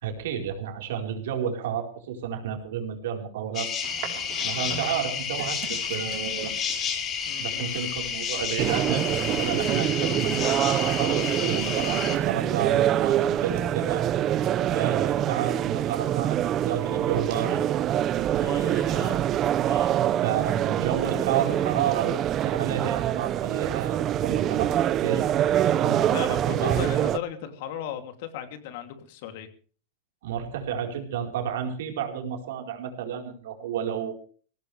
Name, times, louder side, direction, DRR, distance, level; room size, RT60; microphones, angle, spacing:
voice 1, 0.0-3.7 4.4-6.5 7.4-14.1 14.7-16.4 16.7-17.6 18.3-19.2 20.2-25.2 25.6-26.8 30.2-34.1, right 8 dB, 75° right, 3 dB, 4.5 m, -31 dB
sound 1, 3.5-12.2, left 7 dB, 25° left, 2.9 m, -31 dB
sound 2, 3.8-17.7, right 8 dB, 45° right, 4.1 m, -43 dB
voice 2, 7.3-7.7 18.4-19.2 19.6-19.9 26.0-29.5, left 9 dB, 55° left, 7 dB, 2.9 m, -37 dB
sound 3, 8.6-27.2, right 11 dB, 25° right, 0.6 m, -25 dB
21.5 x 17.5 x 3.4 m, 0.42 s
supercardioid pair, 170°, 0 cm